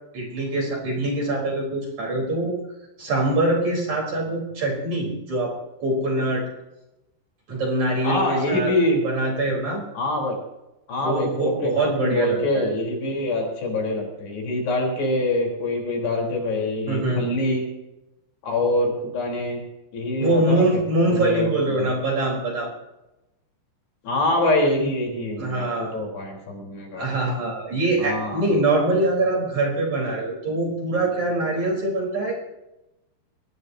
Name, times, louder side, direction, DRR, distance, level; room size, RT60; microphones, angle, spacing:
voice 1, 0.1-2.6 3.0-6.5 7.5-8.7 9.0-9.8 11.0-12.7 16.9-17.3 20.2-22.7 25.4-25.9 26.9-32.3, right 2 dB, 40° right, -1 dB, 5.0 m, -24 dB
voice 2, 8.0-9.0 9.9-10.4 10.9-11.7 12.0-17.6 18.4-19.6 19.9-20.8 21.1-21.9 24.0-27.1 28.0-28.5, left 1 dB, 60° left, 0 dB, 5.9 m, -25 dB
23.5 x 19.5 x 2.8 m, 0.95 s
omnidirectional pair, 5.6 m